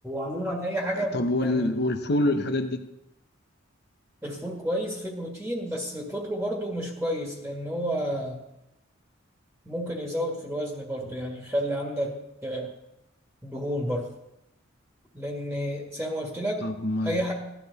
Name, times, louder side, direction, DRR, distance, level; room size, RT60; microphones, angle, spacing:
voice 1, 0.0-1.7 4.2-8.4 9.7-12.7 13.4-14.1 15.1-16.6 17.0-17.3, equal, 5° right, 1.8 m, -31 dB
voice 2, 0.9-2.9 16.6-17.3, left 1 dB, 55° left, 0.9 m, -26 dB
17.5 x 12.5 x 4.1 m
head